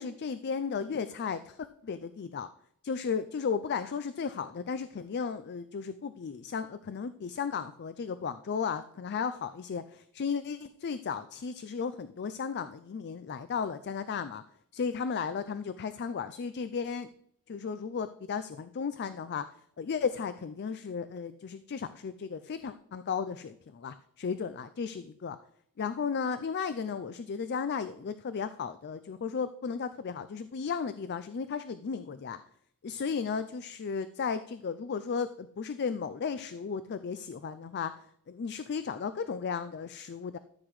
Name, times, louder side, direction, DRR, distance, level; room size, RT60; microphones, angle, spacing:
voice 1, 0.0-2.5 2.8-14.4 14.7-17.1 17.5-19.5 19.8-25.4 25.8-32.4 32.8-37.9 38.3-40.4, left 6 dB, 50° left, 12 dB, 0.4 m, -34 dB
13.5 x 7.9 x 3.2 m, 0.70 s
head